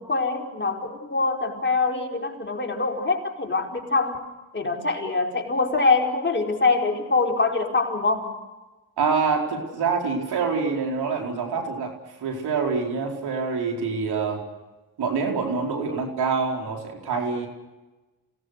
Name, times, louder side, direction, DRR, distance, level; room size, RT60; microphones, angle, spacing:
voice 1, 0.0-4.2 4.5-8.4, left 3 dB, 30° left, 1 dB, 4.8 m, -24 dB
voice 2, 9.0-11.9 12.2-14.4 15.0-17.5, right 5 dB, 80° right, 1 dB, 4.6 m, -26 dB
28.0 x 18.0 x 6.6 m, 1.1 s
supercardioid pair, 55°, 38 cm